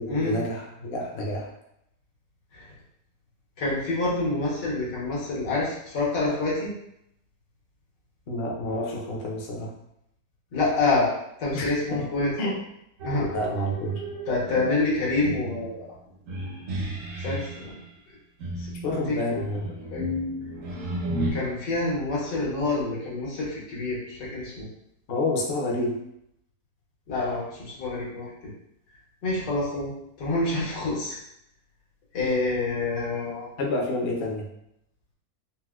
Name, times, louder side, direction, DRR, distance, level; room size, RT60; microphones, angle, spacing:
voice 1, 0.0-1.5 8.3-9.7 11.5-12.1 12.4-12.6 13.3-14.0 18.8-19.7 25.1-25.9 33.6-34.5, left 1 dB, 65° left, -1 dB, 0.6 m, -29 dB
voice 2, 3.6-6.7 10.5-11.1 11.4-12.3 13.0-13.3 14.3-15.9 17.2-17.8 18.6-19.4 19.9-20.0 21.3-24.7 27.1-28.3 29.2-29.9 30.2-31.2 32.1-33.5, left 2 dB, 90° left, -6 dB, 1.7 m, -27 dB
sound 1, 13.0-17.7 18.4-21.3, right 1 dB, 65° right, 0.8 m, -33 dB
4.2 x 2.1 x 2.3 m, 0.78 s
omnidirectional pair, 1.8 m